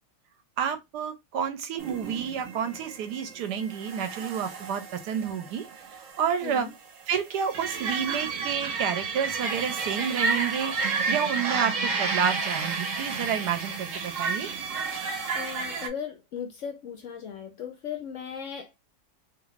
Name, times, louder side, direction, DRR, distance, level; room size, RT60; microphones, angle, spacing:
voice 1, 0.6-5.6 5.9-6.7 7.1-14.5, right 7 dB, 75° right, 1.1 m, -30 dB
sound 1, 1.8-15.9, right 4 dB, 60° right, 0.9 m, -31 dB
voice 2, 15.3-18.8, left 7 dB, 70° left, 0.7 m, -37 dB
2.9 x 2.6 x 3.1 m
omnidirectional pair, 1.9 m